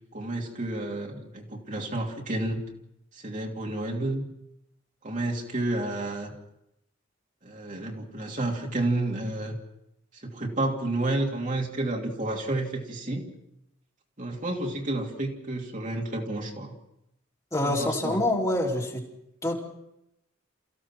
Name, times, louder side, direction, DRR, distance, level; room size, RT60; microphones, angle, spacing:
voice 1, 0.1-2.6 3.1-4.2 5.0-6.3 7.4-9.6 10.1-13.3 14.2-16.7 17.6-18.2, right 2 dB, 40° right, 0 dB, 2.8 m, -30 dB
voice 2, 17.5-19.1 19.4-19.6, left 1 dB, 15° left, -1 dB, 3.1 m, -26 dB
28.5 x 15.5 x 6.1 m, 0.84 s
head